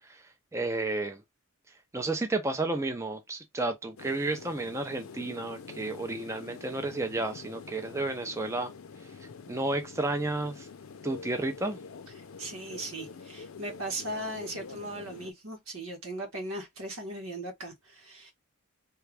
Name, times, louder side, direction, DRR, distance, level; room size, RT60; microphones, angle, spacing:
voice 1, 0.5-1.2 1.9-8.7 9.5-10.7 11.0-11.8, right 2 dB, 15° right, 0.4 m, -32 dB
sound 1, 4.0-15.3, left 5 dB, 80° left, 0.5 m, -46 dB
voice 2, 12.4-18.3, right 1 dB, 85° right, 1.3 m, -38 dB
3.3 x 2.4 x 3.2 m
head